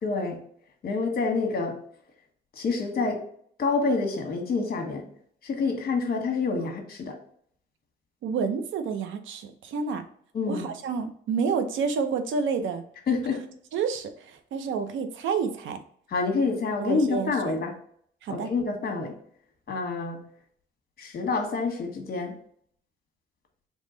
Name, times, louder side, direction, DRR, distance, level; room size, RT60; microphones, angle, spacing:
voice 1, 0.0-0.4 0.8-1.8 2.5-3.2 3.6-5.1 5.4-7.2 10.3-10.7 13.1-13.4 16.1-17.7 18.3-19.2 19.7-20.2 21.0-22.4, left 4 dB, 50° left, 4 dB, 1.2 m, -27 dB
voice 2, 8.2-10.0 10.5-12.8 13.7-15.8 16.8-17.6 18.2-18.5, right 5 dB, 75° right, 8 dB, 0.6 m, -29 dB
3.7 x 3.1 x 3.8 m, 0.63 s
cardioid pair, 90°, 20 cm